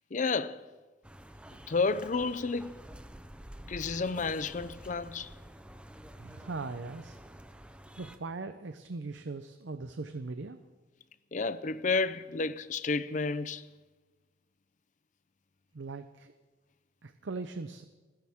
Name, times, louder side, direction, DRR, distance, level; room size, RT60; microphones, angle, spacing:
voice 1, 0.1-0.6 1.7-2.7 3.7-5.3 11.3-13.6, left 4 dB, 40° left, 0.5 m, -31 dB
sound 1, 1.0-8.2, equal, 5° right, 0.6 m, -49 dB
voice 2, 6.2-7.4 8.0-10.6 15.7-16.3 17.0-17.8, right 3 dB, 75° right, 0.7 m, -40 dB
29.5 x 10.5 x 3.6 m
head